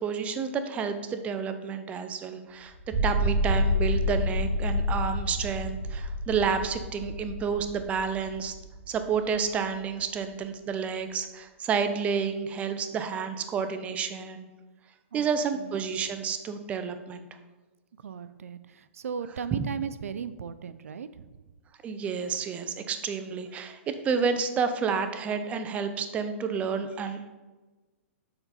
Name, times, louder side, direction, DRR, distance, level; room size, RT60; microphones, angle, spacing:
voice 1, 0.0-2.7 3.0-8.5 8.9-14.5 15.1-17.2 19.5-19.7 21.8-27.3, right 6 dB, 20° right, 9 dB, 0.5 m, -30 dB
sound 1, 2.7-9.2, left 1 dB, 35° right, 1.1 m, -29 dB
voice 2, 18.0-21.3, right 7 dB, 85° right, 14 dB, 0.4 m, -37 dB
6.8 x 4.0 x 4.1 m, 1.2 s
hypercardioid pair, 140°, 8 cm